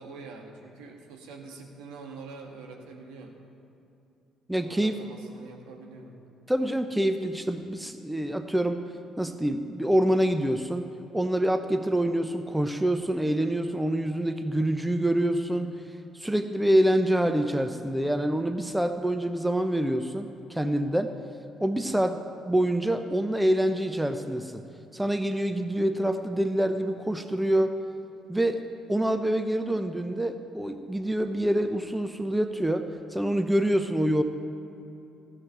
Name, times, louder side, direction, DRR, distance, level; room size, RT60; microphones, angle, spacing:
voice 1, 0.0-3.4 4.5-6.2, right 4 dB, 70° right, 1 dB, 1.9 m, -45 dB
voice 2, 4.5-5.0 6.5-8.8 9.2-10.8 11.1-15.7 16.1-21.1 21.6-22.2 22.5-24.6 24.9-27.7 28.3-28.6 28.9-32.9 33.1-34.2, right 1 dB, 5° right, 8 dB, 0.9 m, -26 dB
15.0 x 7.9 x 9.0 m, 2.8 s
hypercardioid pair, 50°, 0 cm